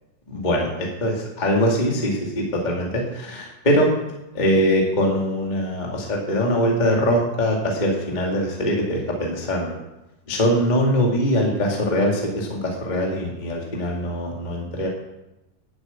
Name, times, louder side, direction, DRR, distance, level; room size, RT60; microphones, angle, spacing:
voice 1, 0.3-3.9 4.3-9.8 10.3-14.9, equal, 15° left, -1 dB, 1.8 m, -22 dB
11.5 x 8.0 x 8.1 m, 0.96 s
omnidirectional pair, 3.7 m